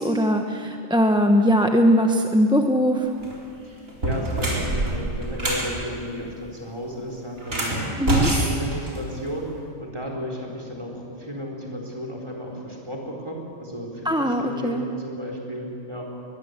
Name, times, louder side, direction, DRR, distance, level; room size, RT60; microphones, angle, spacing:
voice 1, 0.0-3.1 8.0-8.3 14.0-14.8, equal, 5° right, 4 dB, 0.8 m, -20 dB
sound 1, 3.1-3.4 3.9-5.7 7.4-9.4, right 1 dB, 90° right, 4.6 m, -25 dB
voice 2, 3.6-7.9 8.4-16.1, equal, 20° right, 0 dB, 4.2 m, -34 dB
21.5 x 21.0 x 8.2 m, 2.5 s
omnidirectional pair, 1.3 m